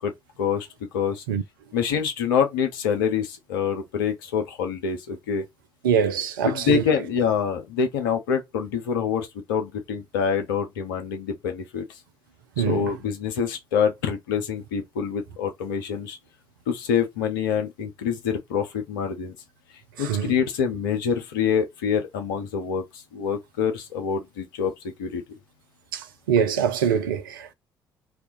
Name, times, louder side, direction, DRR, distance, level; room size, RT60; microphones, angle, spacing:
voice 1, 0.9-1.2 1.7-5.4 6.4-11.8 12.6-16.2 16.7-19.3 20.0-22.8 23.1-24.7 25.0-25.2, left 7 dB, 70° left, 0.6 m, -26 dB
voice 2, 5.8-6.8 12.6-12.9 20.0-20.3 25.9-27.5, right 8 dB, 75° right, 0.4 m, -24 dB
2.3 x 2.1 x 2.5 m
figure-of-eight pair, 45°, 11 cm